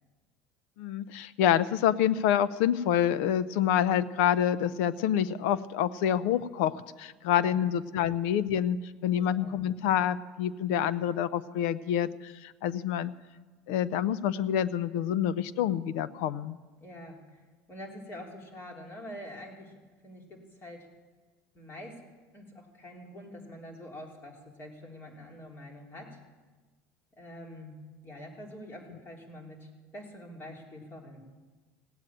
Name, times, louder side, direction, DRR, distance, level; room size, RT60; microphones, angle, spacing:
voice 1, 0.8-8.8 9.0-13.1 13.7-16.6, left 10 dB, 80° left, 17 dB, 0.6 m, -27 dB
voice 2, 9.2-9.6 16.8-17.4 17.7-19.8 20.0-20.9 21.5-22.0 22.3-26.2 27.2-27.8 28.0-31.2, left 1 dB, 35° left, 1 dB, 3.6 m, -46 dB
16.5 x 9.0 x 8.7 m, 1.3 s
supercardioid pair, 110°, 7 cm